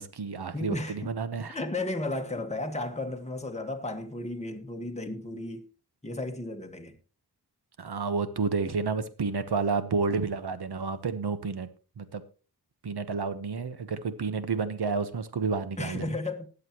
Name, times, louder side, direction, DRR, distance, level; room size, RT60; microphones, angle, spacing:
voice 1, 0.0-1.6 7.8-11.7 12.0-12.2 12.8-16.2, right 4 dB, 75° right, 1.2 m, -30 dB
voice 2, 0.5-1.1 1.5-5.6 6.0-6.9 15.8-16.5, left 2 dB, 15° left, 1.7 m, -34 dB
20.0 x 7.4 x 3.0 m
wide cardioid pair, 75°, 40 cm